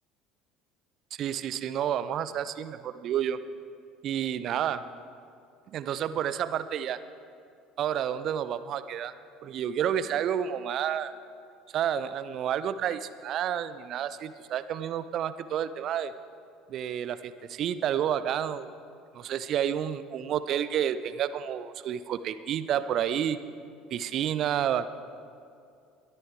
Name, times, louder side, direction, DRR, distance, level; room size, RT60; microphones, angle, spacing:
voice 1, 1.2-3.4 4.0-4.8 5.7-7.0 7.8-9.1 9.4-11.1 11.7-16.1 16.7-18.7 19.1-23.4 23.9-24.9, right 9 dB, 45° right, 14 dB, 0.5 m, -30 dB
21.5 x 12.5 x 3.5 m, 2.4 s
figure-of-eight pair, 60°, 0 cm